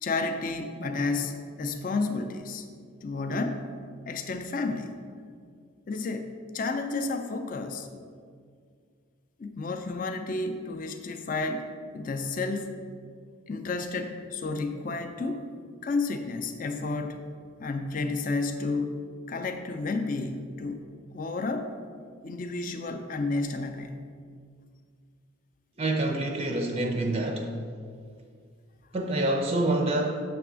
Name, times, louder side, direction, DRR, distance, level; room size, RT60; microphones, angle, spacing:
voice 1, 0.0-2.6 3.0-3.7 4.1-4.9 5.9-7.9 9.4-11.7 11.9-12.7 13.5-15.4 15.8-17.2 17.6-19.0 19.3-20.8 21.1-21.7 22.2-24.0, left 3 dB, 40° left, 6 dB, 0.4 m, -31 dB
voice 2, 25.8-27.5 28.9-30.2, right 2 dB, 30° right, 2 dB, 0.4 m, -27 dB
6.8 x 3.4 x 6.0 m, 2.1 s
head